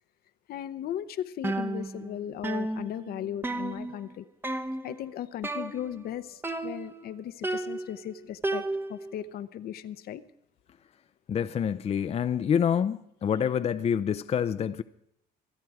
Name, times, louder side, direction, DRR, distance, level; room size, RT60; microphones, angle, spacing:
voice 1, 0.5-4.3 4.8-8.6 8.9-10.2, left 10 dB, 65° left, 0.8 m, -37 dB
sound 1, 1.4-2.2 2.4-4.1 4.4-5.0 5.4-6.1 6.4-7.1 7.4-9.1, right 2 dB, 10° right, 0.9 m, -33 dB
voice 2, 11.3-14.8, left 8 dB, 40° left, 0.6 m, -27 dB
26.0 x 9.2 x 4.8 m
cardioid pair, 110°, 17 cm